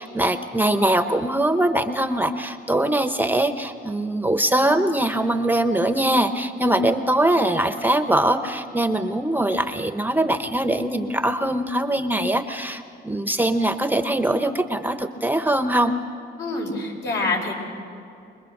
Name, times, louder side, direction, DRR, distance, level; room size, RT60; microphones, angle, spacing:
voice 1, 0.0-15.9, right 1 dB, 10° right, 8 dB, 0.9 m, -22 dB
voice 2, 16.4-17.6, left 3 dB, 65° left, 0 dB, 5.3 m, -26 dB
24.0 x 21.5 x 6.6 m, 2.5 s
cardioid pair, 90°, 20 cm